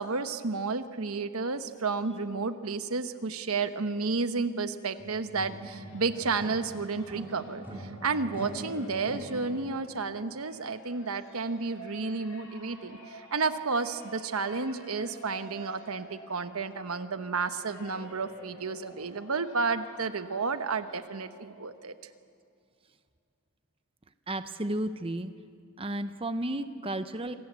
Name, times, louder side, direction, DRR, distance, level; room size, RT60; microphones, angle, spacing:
voice 1, 0.0-21.9, right 4 dB, 85° right, 10 dB, 1.1 m, -32 dB
sound 1, 5.0-6.8 7.1-9.7, right 2 dB, 10° right, 4.4 m, -42 dB
sound 2, 5.3-22.0, equal, 75° left, 5.6 m, -51 dB
voice 2, 24.3-25.3 25.8-27.3, right 1 dB, 25° right, 10 dB, 0.8 m, -33 dB
27.0 x 19.5 x 8.3 m, 2.2 s
head